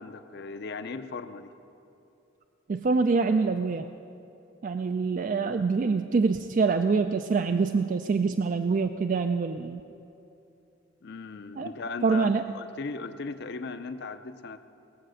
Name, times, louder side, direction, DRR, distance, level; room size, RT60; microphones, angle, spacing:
voice 1, 0.0-1.5 11.0-14.6, left 4 dB, 55° left, 10 dB, 0.6 m, -37 dB
voice 2, 2.7-3.8 4.6-9.8 11.6-11.7 12.0-12.4, right 4 dB, 40° right, 8 dB, 0.3 m, -25 dB
20.0 x 7.6 x 6.4 m, 2.8 s
head